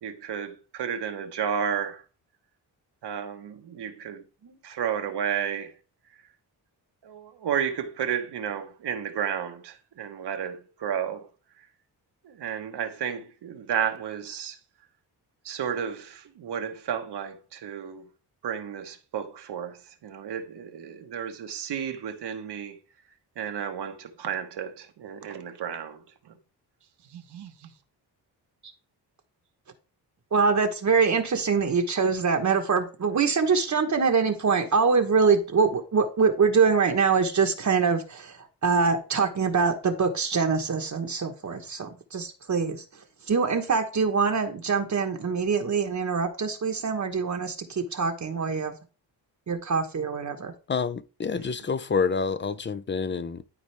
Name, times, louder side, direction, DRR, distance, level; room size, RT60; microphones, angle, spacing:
voice 1, 0.0-2.0 3.0-4.2 4.6-5.7 7.0-11.3 11.6-11.7 12.2-14.6 15.4-18.1 18.4-22.8 23.4-26.4 27.0-27.7, right 8 dB, 75° right, 1.3 m, -32 dB
voice 2, 30.3-42.8 43.3-48.7 49.5-50.5, right 5 dB, 45° right, 1.1 m, -24 dB
voice 3, 50.7-53.4, left 5 dB, 30° left, 0.5 m, -28 dB
12.0 x 4.2 x 3.3 m
cardioid pair, 90°, 41 cm